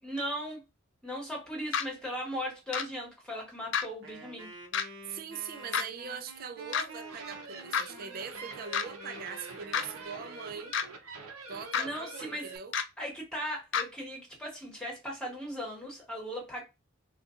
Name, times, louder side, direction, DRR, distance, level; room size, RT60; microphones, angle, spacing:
voice 1, 0.0-0.6 1.0-4.5 11.8-12.5 13.0-16.6, equal, 5° left, 1.4 m, -38 dB
sound 1, 1.7-1.8 2.7-2.8 3.7-3.9 4.7-4.9 5.7-5.8 6.7-6.9 7.7-7.9 8.7-8.8 9.7-9.8 10.7-10.9 11.7-11.8 12.7-12.8 13.7-13.8, left 7 dB, 60° left, 0.4 m, -28 dB
Wind instrument woodwind instrument, 4.0-10.7, right 3 dB, 60° right, 1.0 m, -49 dB
voice 2, 5.1-10.8 11.5-12.8, right 6 dB, 45° right, 0.4 m, -42 dB
sound 2, 6.8-12.6, right 4 dB, 85° right, 0.7 m, -46 dB
4.3 x 2.3 x 2.4 m
head